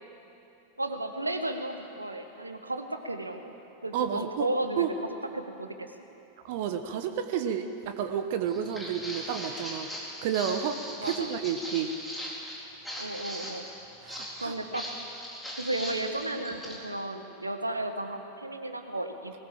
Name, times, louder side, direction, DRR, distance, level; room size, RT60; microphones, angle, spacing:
voice 1, 0.8-3.5 3.8-4.8 5.3-5.7 11.0-11.3 13.0-13.6 14.4-14.9 15.6-19.3, right 1 dB, 85° right, 6 dB, 1.4 m, -33 dB
voice 2, 3.9-4.5 4.8-4.9 6.4-9.9 10.2-11.9 14.0-14.5, right 8 dB, 50° right, 7 dB, 1.1 m, -31 dB
Walk footsteps, 8.5-16.8, equal, 5° left, 4.1 m, -39 dB
20.5 x 19.0 x 7.6 m, 3.0 s
figure-of-eight pair, 90°, 0 cm